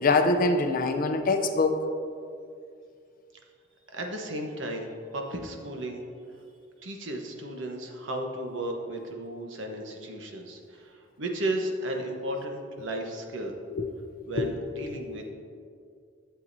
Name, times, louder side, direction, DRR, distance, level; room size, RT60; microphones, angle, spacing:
voice 1, 0.0-1.8 13.7-13.8 14.4-14.5, left 3 dB, 45° left, 6 dB, 0.6 m, -24 dB
voice 2, 3.9-6.0 6.8-13.5 14.2-15.3, right 1 dB, 65° right, 2 dB, 1.0 m, -34 dB
11.5 x 7.8 x 2.7 m, 2.4 s
head